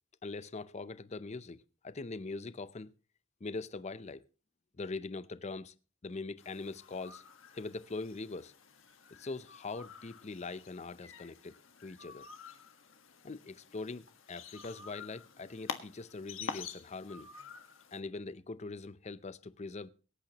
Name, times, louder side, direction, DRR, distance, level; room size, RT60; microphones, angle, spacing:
voice 1, 0.2-2.9 3.4-4.2 4.8-5.7 6.0-7.2 7.5-8.5 9.1-12.3 13.2-17.3 17.9-19.9, left 3 dB, 35° left, 0.6 m, -42 dB
sound 1, 6.4-18.0, left 5 dB, 75° left, 1.5 m, -48 dB
23.0 x 8.8 x 2.9 m
head